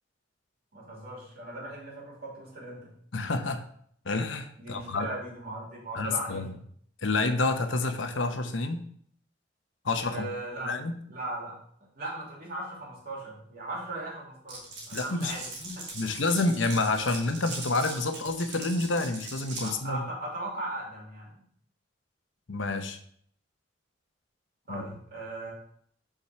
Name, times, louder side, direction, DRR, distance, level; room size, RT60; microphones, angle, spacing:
voice 1, 0.7-2.9 4.6-6.6 10.1-10.7 11.1-11.5 11.9-16.2 19.6-21.4 24.7-25.5, right 1 dB, 50° right, -4 dB, 2.8 m, -38 dB
voice 2, 3.1-3.6 4.0-5.1 5.9-6.5 7.0-8.8 9.8-10.3 10.6-11.0 14.9-15.3 16.0-20.0 22.5-23.0 24.7-24.8, left 3 dB, 85° left, 8 dB, 0.9 m, -28 dB
Glass, 14.5-19.7, right 3 dB, 70° right, 2.5 m, -40 dB
5.6 x 4.9 x 5.8 m, 0.63 s
head